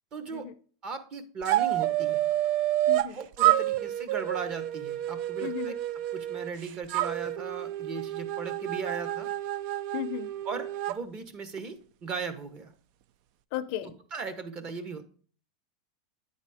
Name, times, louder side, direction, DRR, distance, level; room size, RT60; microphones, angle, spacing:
voice 1, 0.1-0.5 0.8-2.3 3.1-9.3 10.4-12.7 14.1-15.0, right 5 dB, 30° right, 9 dB, 1.1 m, -38 dB
sound 1, 1.4-3.1 3.4-6.5 6.9-11.0, right 14 dB, 50° right, 0.4 m, -29 dB
voice 2, 2.9-3.2 5.4-5.7 9.9-10.3 13.5-14.0, left 12 dB, 50° left, 13 dB, 0.5 m, -34 dB
9.6 x 4.1 x 4.9 m, 0.43 s
supercardioid pair, 140°, 3 cm